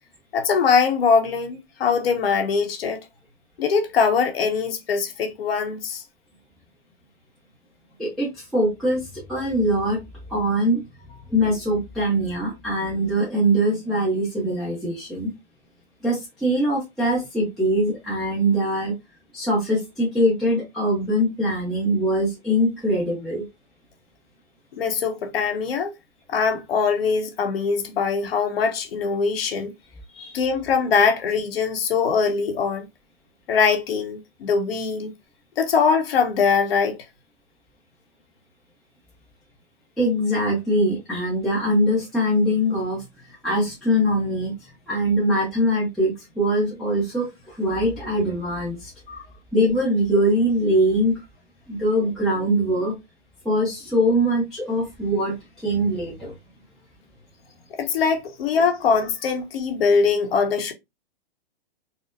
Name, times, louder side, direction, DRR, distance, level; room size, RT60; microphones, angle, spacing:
voice 1, 0.3-3.0 3.6-6.0 24.7-25.9 26.3-29.7 30.3-32.9 33.5-35.1 35.6-37.0 49.1-49.2 57.8-60.7, left 5 dB, 70° left, 0.9 m, -22 dB
voice 2, 8.0-10.0 10.3-10.8 11.3-15.3 16.0-18.9 19.3-23.4 30.1-30.4 40.0-48.9 49.5-51.2 51.7-52.9 53.4-55.4 55.6-56.3, equal, ahead, 0.6 m, -22 dB
4.2 x 2.1 x 2.5 m
hypercardioid pair, 150°, 31 cm